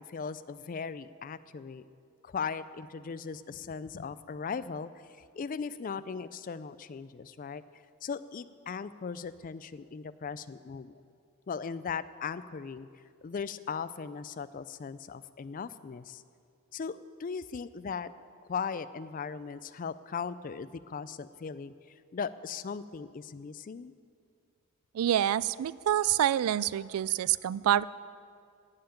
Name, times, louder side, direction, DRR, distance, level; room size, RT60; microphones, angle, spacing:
voice 1, 0.0-1.8 2.2-7.6 8.0-11.0 11.5-12.9 13.2-16.2 16.7-18.1 18.4-23.9, left 5 dB, 40° left, 15 dB, 0.3 m, -38 dB
voice 2, 24.9-27.8, right 11 dB, 80° right, 19 dB, 0.3 m, -27 dB
15.5 x 5.8 x 9.0 m, 2.3 s
head